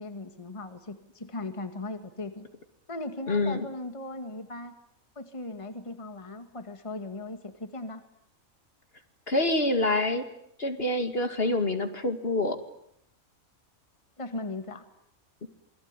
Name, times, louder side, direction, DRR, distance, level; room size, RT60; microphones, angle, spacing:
voice 1, 0.0-2.5 2.9-4.7 5.2-8.0 14.2-14.8, left 2 dB, 20° left, 8 dB, 2.0 m, -38 dB
voice 2, 3.3-3.7 9.3-10.2 10.6-12.6, left 2 dB, 45° left, 7 dB, 2.4 m, -26 dB
27.5 x 22.0 x 9.8 m, 0.73 s
omnidirectional pair, 1.5 m